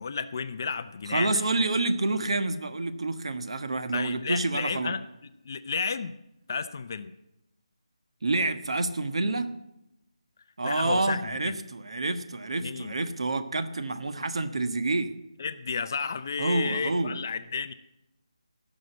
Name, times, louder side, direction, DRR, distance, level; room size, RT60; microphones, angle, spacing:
voice 1, 0.0-1.4 3.9-5.0 5.4-6.1 6.5-7.1 10.6-11.6 12.6-13.0 15.4-17.7, left 5 dB, 30° left, 12 dB, 0.6 m, -32 dB
voice 2, 1.1-4.9 8.2-9.5 10.6-15.2 16.4-17.2, right 2 dB, 60° right, 10 dB, 1.3 m, -28 dB
17.0 x 6.5 x 7.9 m, 0.87 s
figure-of-eight pair, 175°, 3 cm